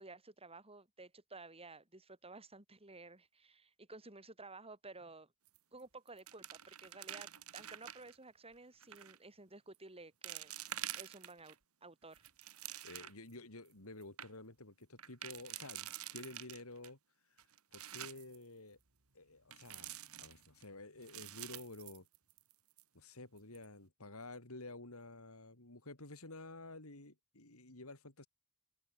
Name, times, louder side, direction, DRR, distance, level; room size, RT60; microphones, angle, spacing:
voice 1, 0.0-5.3 5.7-10.5 10.9-11.6 11.8-12.2, right 3 dB, 25° right, 7.6 m, -54 dB
sound 1, 5.5-5.8 6.1-8.1 8.8-9.2 9.7-9.8 10.2-11.5 12.0-13.3 13.7-13.8 14.0-14.3 15.0-16.9 17.4-18.4 19.5-20.6 21.0-22.5 22.8-22.9 23.4-23.6, right 12 dB, 85° right, 2.9 m, -47 dB
voice 2, 12.8-17.0 17.7-18.8 19.1-22.1 22.9-28.3, left 2 dB, 80° left, 4.2 m, -51 dB
head